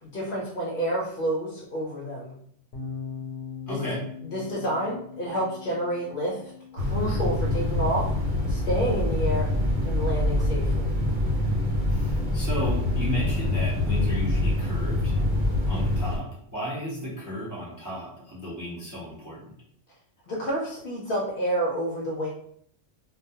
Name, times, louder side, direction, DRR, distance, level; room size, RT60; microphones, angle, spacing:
voice 1, 0.0-2.4 3.7-3.8 4.3-6.4 6.7-8.1 8.5-9.5 9.8-10.9 20.3-22.3, right 1 dB, 60° left, -3 dB, 0.6 m, -29 dB
sound 1, 2.7-9.0, left 6 dB, 85° left, 0.9 m, -41 dB
voice 2, 3.7-4.0 11.9-15.2 15.7-19.5, equal, 25° right, -6 dB, 0.4 m, -34 dB
sound 2, 6.8-16.2, left 1 dB, 75° right, 1.1 m, -25 dB
2.2 x 2.2 x 2.7 m, 0.66 s
omnidirectional pair, 1.3 m